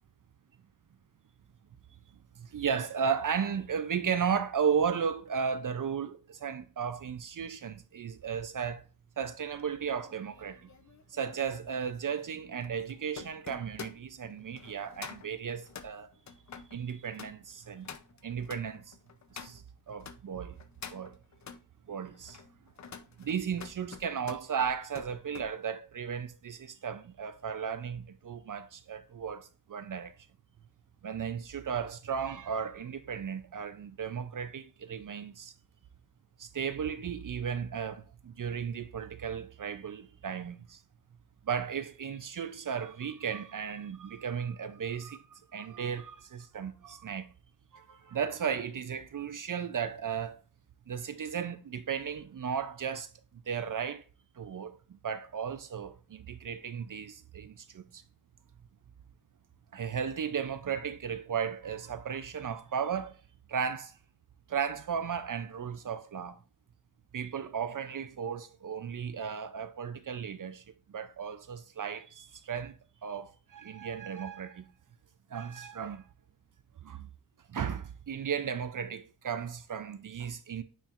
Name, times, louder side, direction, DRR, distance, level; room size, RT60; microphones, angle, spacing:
voice 1, 2.4-8.8 9.2-10.7 11.1-16.1 16.7-17.9 18.2-18.9 19.3-20.6 20.9-21.1 21.9-22.4 23.2-30.1 31.0-35.5 36.4-40.8 41.4-47.3 47.7-50.4 50.9-54.0 54.4-58.0 59.7-63.2 63.5-64.0 64.5-66.4 67.1-72.8 73.0-74.7 75.3-76.0 76.8-77.1 77.5-80.6, right 7 dB, 50° right, 0.5 m, -35 dB
sound 1, 9.5-20.2 20.6-21.6 22.1-25.5 25.9-26.2, left 6 dB, 45° left, 0.6 m, -48 dB
9.0 x 4.4 x 2.5 m
wide cardioid pair, 115°, 40 cm